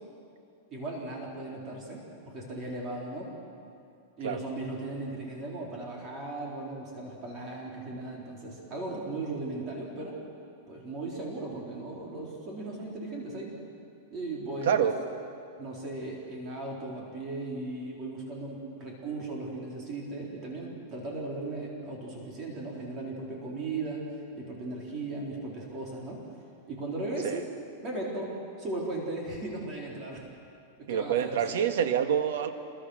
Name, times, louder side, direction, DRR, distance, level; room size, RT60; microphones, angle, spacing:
voice 1, 0.7-3.3 4.2-10.2 10.7-13.5 14.1-14.9 15.6-26.2 26.7-27.5 27.8-30.2 30.8-31.7, right 2 dB, 25° right, -2 dB, 4.0 m, -37 dB
voice 2, 30.9-32.5, right 9 dB, 70° right, 7 dB, 1.9 m, -26 dB
27.0 x 22.5 x 6.5 m, 2.5 s
supercardioid pair, 170°, 0 cm